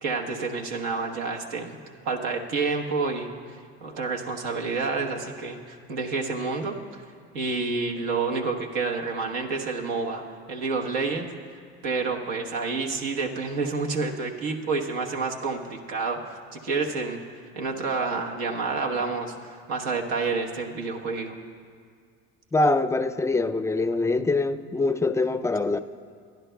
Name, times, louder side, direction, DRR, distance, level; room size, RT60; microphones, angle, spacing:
voice 1, 0.0-1.8 2.0-3.3 3.8-7.0 7.3-10.2 10.5-11.3 11.8-17.2 17.5-21.4, right 4 dB, 80° right, 1.3 m, -29 dB
voice 2, 22.5-25.8, left 3 dB, 10° left, 0.4 m, -24 dB
23.0 x 10.5 x 2.3 m
supercardioid pair, 75°, 32 cm